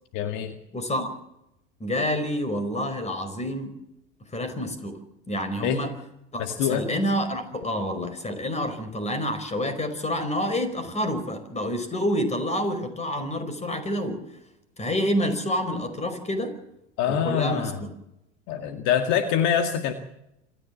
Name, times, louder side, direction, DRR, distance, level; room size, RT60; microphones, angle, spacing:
voice 1, 0.1-0.6 5.6-5.8 6.4-6.9 17.0-17.8 18.5-19.9, left 8 dB, 60° left, 6 dB, 2.1 m, -25 dB
voice 2, 0.7-1.1 1.8-3.8 4.3-5.0 5.3-5.9 6.3-14.2 14.8-16.6 17.1-17.9, equal, 20° left, 11 dB, 5.1 m, -28 dB
27.0 x 14.0 x 7.5 m, 0.84 s
hypercardioid pair, 85°, 35 cm